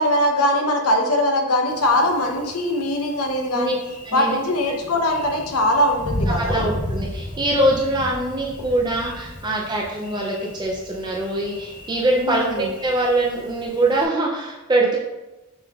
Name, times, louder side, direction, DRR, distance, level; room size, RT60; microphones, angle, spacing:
voice 1, 0.0-3.7 4.1-6.7 12.2-12.7, left 1 dB, 85° left, 3 dB, 0.7 m, -21 dB
Thunder, 1.7-14.1, left 1 dB, 35° left, 0.6 m, -34 dB
voice 2, 4.1-4.4 6.3-15.0, right 1 dB, 20° right, -2 dB, 0.4 m, -23 dB
6.1 x 3.4 x 2.4 m, 1.0 s
head